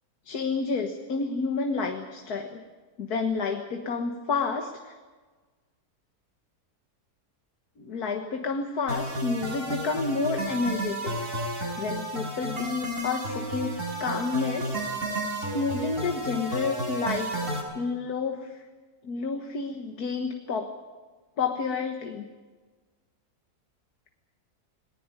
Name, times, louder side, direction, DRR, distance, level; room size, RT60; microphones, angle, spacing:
voice 1, 0.3-2.6 3.0-5.0 7.8-13.7 14.0-14.8 15.3-17.3 17.8-18.5 19.0-20.7 21.4-22.2, left 4 dB, 80° left, 5 dB, 2.0 m, -30 dB
sound 1, 8.9-17.6, right 1 dB, 55° right, 6.0 m, -32 dB
20.0 x 19.5 x 9.1 m, 1.4 s
omnidirectional pair, 1.6 m